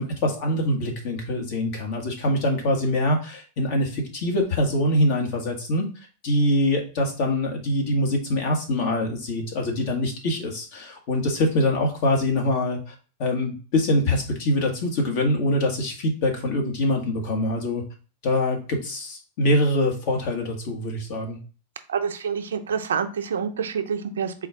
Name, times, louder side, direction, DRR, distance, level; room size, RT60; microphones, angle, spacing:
voice 1, 0.0-5.9 6.2-12.9 13.2-17.8 18.2-21.4, left 1 dB, 55° left, 2 dB, 1.5 m, -24 dB
voice 2, 21.9-24.3, right 6 dB, 90° right, 7 dB, 0.6 m, -27 dB
4.3 x 2.4 x 4.4 m, 0.37 s
hypercardioid pair, 115°, 0 cm